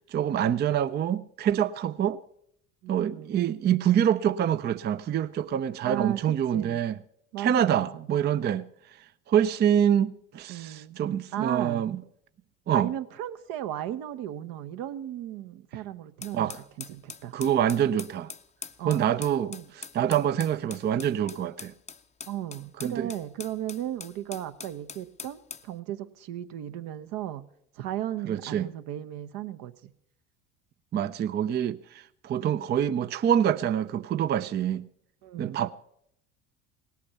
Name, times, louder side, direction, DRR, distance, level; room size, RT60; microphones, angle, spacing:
voice 1, 0.1-2.2 2.9-7.0 7.4-8.6 9.3-12.0 12.7-12.9 16.3-16.6 17.3-18.3 18.8-21.7 22.8-23.1 28.3-28.7 30.9-34.9 35.4-35.7, right 9 dB, 30° right, 0.4 m, -26 dB
voice 2, 2.8-3.4 5.8-6.8 7.3-8.1 10.5-11.1 11.3-11.8 12.7-16.5 16.9-17.3 18.8-19.1 19.5-19.7 22.3-27.4 27.8-29.9 35.2-35.7, right 12 dB, 60° right, 0.9 m, -35 dB
sound 1, 16.2-25.7, left 6 dB, 20° left, 0.6 m, -43 dB
17.5 x 8.5 x 6.9 m
hypercardioid pair, 70°, 38 cm